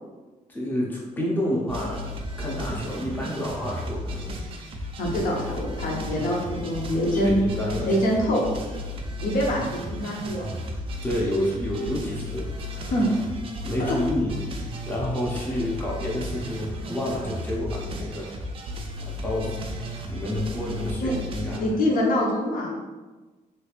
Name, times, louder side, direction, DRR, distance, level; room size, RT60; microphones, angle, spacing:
voice 1, 0.5-4.4 5.1-5.2 7.2-8.1 11.0-12.9 13.6-18.4 19.0-19.5 20.1-21.8, left 1 dB, 10° left, -4 dB, 0.6 m, -29 dB
sound 1, 1.7-21.6, left 1 dB, 35° right, 0.4 m, -34 dB
voice 2, 5.0-7.4 7.8-8.4 9.2-10.5 12.8-13.1 13.9-14.0 21.0-21.1 21.6-22.7, equal, 70° left, -2 dB, 0.7 m, -25 dB
3.2 x 3.1 x 2.4 m, 1.2 s
cardioid pair, 155°, 15 cm